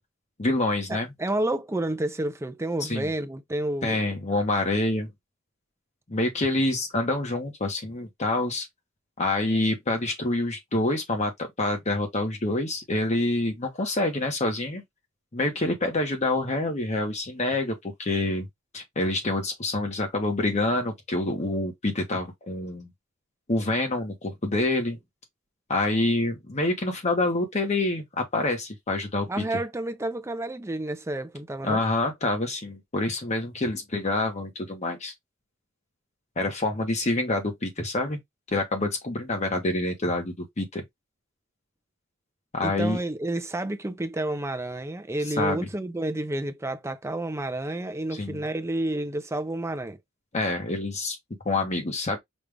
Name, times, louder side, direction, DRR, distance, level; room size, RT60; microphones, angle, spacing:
voice 1, 0.4-1.1 2.8-3.1 3.8-5.1 6.1-8.7 9.2-14.8 15.3-18.4 18.7-22.9 23.5-25.0 25.7-29.4 31.6-35.1 36.4-38.2 38.5-40.8 42.5-43.0 45.4-45.6 48.1-48.4 50.3-51.2 51.4-52.2, left 2 dB, 35° left, 1.0 m, -27 dB
voice 2, 0.9-4.0 29.2-31.8 42.6-50.0, right 1 dB, 15° right, 0.5 m, -30 dB
5.3 x 2.4 x 3.3 m
head